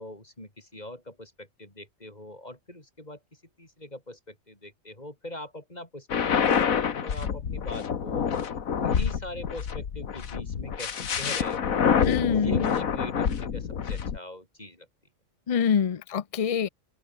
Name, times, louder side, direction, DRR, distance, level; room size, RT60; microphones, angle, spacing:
voice 1, 0.0-3.2 3.6-11.8 12.3-14.9, left 1 dB, 30° left, 6.0 m, -42 dB
sound 1, 6.1-14.2, left 7 dB, 80° left, 1.8 m, -27 dB
voice 2, 12.0-12.7 15.5-16.7, left 7 dB, 60° left, 0.3 m, -25 dB
open air
omnidirectional pair, 1.4 m